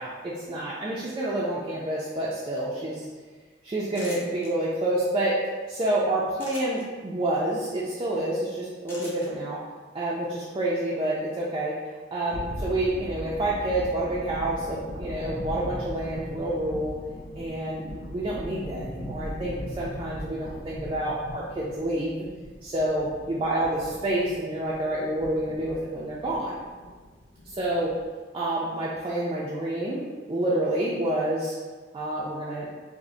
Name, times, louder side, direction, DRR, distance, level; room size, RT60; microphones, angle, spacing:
voice 1, 0.0-3.0 3.6-5.4 5.7-9.6 9.9-11.8 12.1-16.9 17.4-22.3 22.6-26.6 27.6-27.9 28.3-30.0 30.3-31.5 31.9-32.7, right 1 dB, 25° right, -6 dB, 0.4 m, -28 dB
sound 1, 3.9-4.5 6.3-6.8 8.9-9.3, left 1 dB, 15° left, 0.7 m, -42 dB
sound 2, 12.3-28.1, left 1 dB, 55° left, 0.6 m, -39 dB
4.8 x 2.1 x 2.6 m, 1.4 s
head